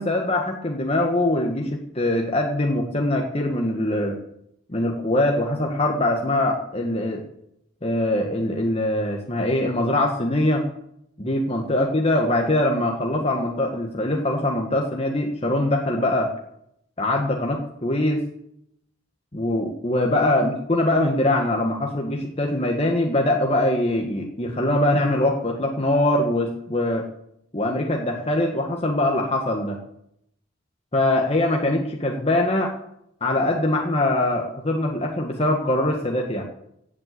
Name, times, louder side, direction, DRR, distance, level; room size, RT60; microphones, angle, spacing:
voice 1, 0.0-4.2 4.7-7.2 7.8-10.6 11.2-16.3 17.0-18.2 19.3-27.0 27.5-29.8 30.9-32.7 33.2-36.4, left 1 dB, 30° left, 1 dB, 1.4 m, -22 dB
15.5 x 7.8 x 8.2 m, 0.78 s
head